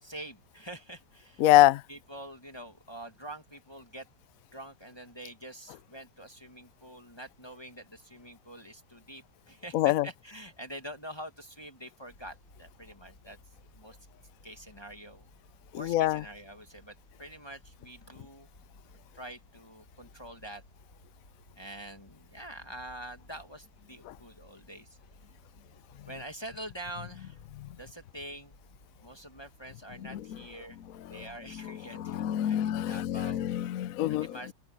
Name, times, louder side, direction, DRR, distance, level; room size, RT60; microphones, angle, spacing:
voice 1, 0.0-1.4 1.9-4.1 4.5-13.4 13.7-14.0 14.4-15.3 15.7-18.5 19.1-20.6 21.5-25.0 26.1-27.4 27.8-28.5 29.0-30.8 31.1-33.6 34.2-34.5, right 1 dB, 15° left, 1.6 m, -45 dB
voice 2, 1.4-1.8 9.7-10.1 15.7-16.2 24.1-24.2 27.6-27.7 30.1-30.2 31.1-31.2 31.6-34.4, left 14 dB, 70° left, 0.8 m, -25 dB
sound 1, 12.1-31.8, left 2 dB, 45° left, 4.5 m, -59 dB
omnidirectional pair, 2.0 m